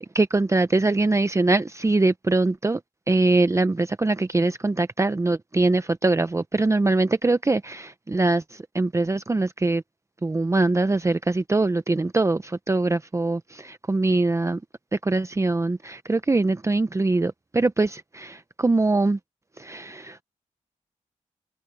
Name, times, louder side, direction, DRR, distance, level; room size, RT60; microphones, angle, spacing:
voice 1, 0.1-2.8 3.1-9.8 10.2-14.6 15.0-19.2 19.6-20.2, right 2 dB, 25° right, 0.7 m, -23 dB
open air
cardioid pair, 70°, 13 cm